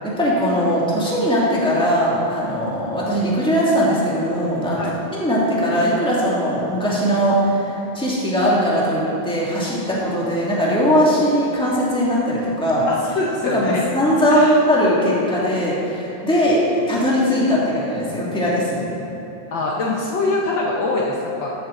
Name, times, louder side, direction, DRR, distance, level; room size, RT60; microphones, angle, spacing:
voice 1, 0.2-4.8 5.1-12.8 13.5-18.9, equal, ahead, -7 dB, 1.6 m, -20 dB
voice 2, 12.9-13.8 14.3-14.6 19.5-21.5, left 2 dB, 90° left, -2 dB, 1.0 m, -23 dB
13.5 x 8.9 x 3.8 m, 3.0 s
omnidirectional pair, 3.3 m